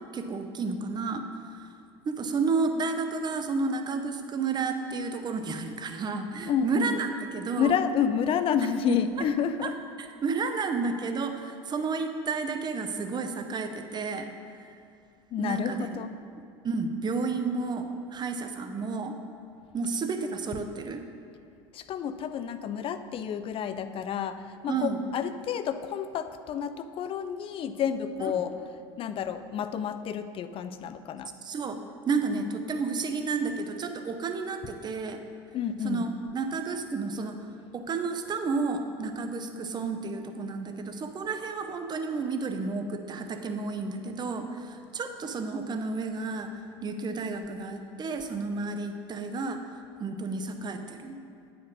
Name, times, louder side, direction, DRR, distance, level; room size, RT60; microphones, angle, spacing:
voice 1, 0.1-1.2 1.5-1.7 2.0-7.8 8.6-9.0 9.6-9.7 10.0-14.3 14.5-14.7 15.4-16.0 16.6-19.1 19.7-21.0 24.7-25.0 28.2-28.5 31.4-31.8 32.1-35.2 35.8-37.4 37.7-46.5 46.8-49.6 50.0-51.2, right 4 dB, 30° right, 6 dB, 0.7 m, -31 dB
voice 2, 6.5-7.0 7.6-9.8 15.3-16.1 21.7-28.5 29.0-31.3 35.5-36.1, left 8 dB, 40° left, 12 dB, 0.5 m, -30 dB
9.1 x 5.0 x 4.7 m, 2.4 s
hypercardioid pair, 80°, 15 cm